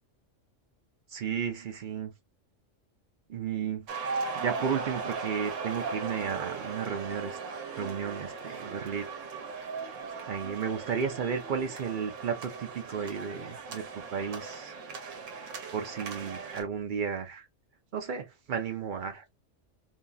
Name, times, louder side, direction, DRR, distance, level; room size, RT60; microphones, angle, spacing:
voice 1, 1.1-2.1 3.3-3.9 4.3-7.4 7.8-9.1 10.3-13.8 14.1-14.8 15.7-17.5 17.9-19.2, right 7 dB, 50° right, 0.7 m, -33 dB
sound 1, 3.9-16.6, right 4 dB, 80° right, 1.1 m, -38 dB
2.9 x 2.7 x 2.2 m
omnidirectional pair, 1.3 m